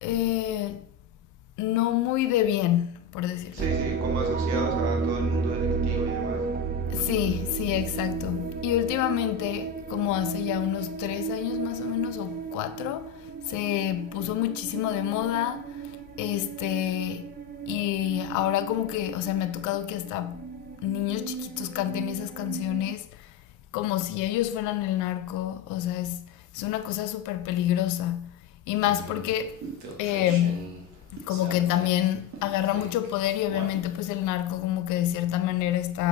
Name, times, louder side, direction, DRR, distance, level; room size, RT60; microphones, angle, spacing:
voice 1, 0.0-0.9 1.6-4.0 6.9-17.3 17.7-20.5 20.8-23.3 23.7-28.4 28.7-29.6 30.0-30.9 31.1-36.1, left 13 dB, 50° left, 0.5 m, -28 dB
voice 2, 3.5-6.6, right 4 dB, 65° right, 1.9 m, -35 dB
sound 1, 3.6-22.9, right 5 dB, 25° right, 0.7 m, -33 dB
sound 2, 28.8-34.2, right 4 dB, 45° right, 1.8 m, -42 dB
6.9 x 4.6 x 3.9 m
figure-of-eight pair, 60°, 40 cm